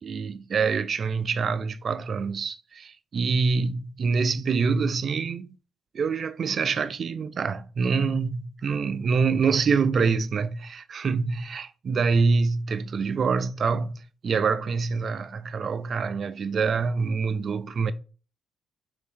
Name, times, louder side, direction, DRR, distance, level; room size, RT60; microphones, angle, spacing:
voice 1, 0.0-2.8 3.1-5.5 5.9-17.9, right 5 dB, 50° right, 0.3 m, -25 dB
4.2 x 2.7 x 3.6 m
cardioid pair, 90°, 0 cm